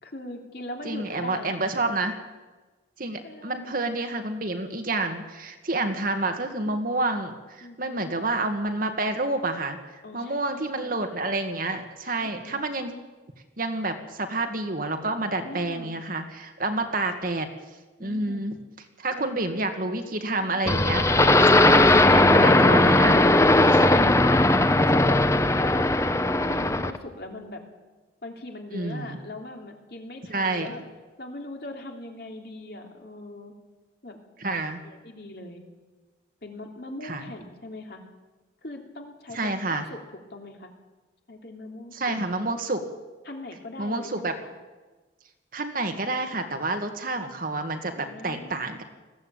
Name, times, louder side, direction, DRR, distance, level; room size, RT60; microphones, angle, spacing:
voice 1, 0.0-1.7 3.2-3.6 6.7-6.8 7.6-8.1 10.0-11.1 12.2-12.6 15.4-16.0 18.0-18.6 19.1-19.4 23.7-24.4 24.7-25.8 26.3-27.6 28.2-30.8 31.2-33.5 34.0-34.2 34.8-35.6 36.4-38.0 38.6-40.0 40.3-40.7 41.3-42.1 43.2-44.5 48.0-48.8, left 2 dB, 55° left, 3 dB, 3.0 m, -40 dB
voice 2, 0.8-2.2 3.0-9.8 10.1-12.9 13.6-17.5 18.0-18.5 19.0-23.2 24.0-24.1 28.7-29.2 30.3-30.7 34.4-34.8 37.0-37.3 39.3-39.8 41.9-42.8 43.8-44.4 45.5-48.8, right 2 dB, 50° right, 6 dB, 1.9 m, -29 dB
sound 1, 20.7-27.0, left 2 dB, 15° left, 0.8 m, -18 dB
20.0 x 15.0 x 9.0 m, 1.3 s
head